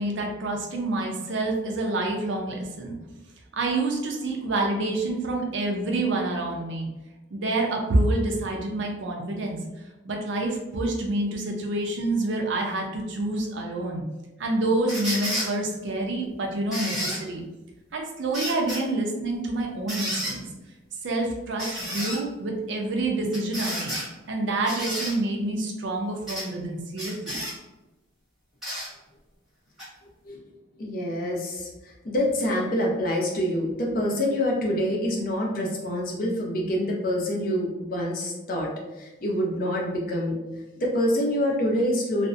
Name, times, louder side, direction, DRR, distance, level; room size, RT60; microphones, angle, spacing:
voice 1, 0.0-3.0 3.5-6.9 7.3-9.6 10.1-14.0 14.4-17.4 17.9-20.4 21.0-24.0 24.3-27.4, right 2 dB, 70° right, 1 dB, 0.5 m, -27 dB
sound 1, 14.9-15.5 16.7-17.2 18.3-18.8 19.9-20.3 21.6-22.2 23.3-24.1 24.7-25.1 26.3-26.5 27.0-27.5 28.6-28.9 29.8-29.9, equal, ahead, 1.0 m, -31 dB
voice 2, 30.8-31.7 32.0-38.7 39.0-40.4 40.8-42.3, equal, 45° left, -1 dB, 0.5 m, -26 dB
2.5 x 2.0 x 2.4 m, 1.1 s
head